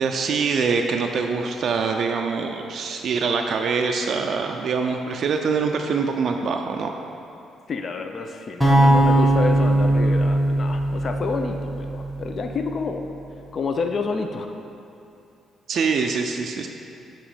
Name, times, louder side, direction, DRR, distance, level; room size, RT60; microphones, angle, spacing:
voice 1, 0.0-6.9 15.7-16.7, right 5 dB, 60° right, 3 dB, 0.3 m, -24 dB
voice 2, 7.7-13.1 13.5-14.5, left 4 dB, 50° left, 5 dB, 0.4 m, -29 dB
sound 1, 8.6-12.7, right 1 dB, 5° left, 1.0 m, -20 dB
7.2 x 3.0 x 4.9 m, 2.7 s
cardioid pair, 90°, 0 cm